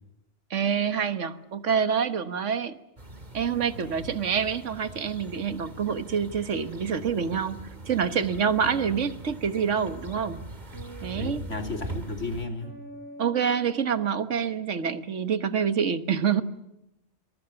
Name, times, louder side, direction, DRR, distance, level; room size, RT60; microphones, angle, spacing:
voice 1, 0.5-2.8 3.3-7.6 7.9-10.4 11.0-11.5 13.2-16.4, right 7 dB, 70° right, 11 dB, 1.6 m, -27 dB
sound 1, 3.0-12.4, right 2 dB, 35° right, 2.7 m, -42 dB
voice 2, 3.7-4.1 8.6-8.8 11.1-12.8, left 2 dB, 70° left, 5 dB, 3.4 m, -35 dB
sound 2, 10.7-14.2, right 1 dB, 50° right, 6.9 m, -47 dB
26.5 x 22.5 x 7.0 m, 0.88 s
omnidirectional pair, 1.3 m